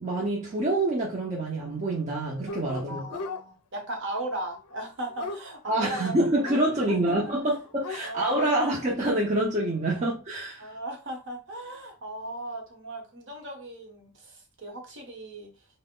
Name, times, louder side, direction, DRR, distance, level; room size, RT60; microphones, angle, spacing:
voice 1, 0.0-3.1 5.7-10.8, right 1 dB, 30° right, 0.6 m, -26 dB
Dog, 2.5-3.4 4.5-6.6 7.3-7.4 7.7-8.4, left 4 dB, 85° left, 0.4 m, -38 dB
voice 2, 2.9-6.3 6.6-7.2 8.0-8.9 9.9-10.1 10.6-15.5, right 1 dB, 55° right, 1.0 m, -37 dB
3.0 x 2.1 x 3.7 m
head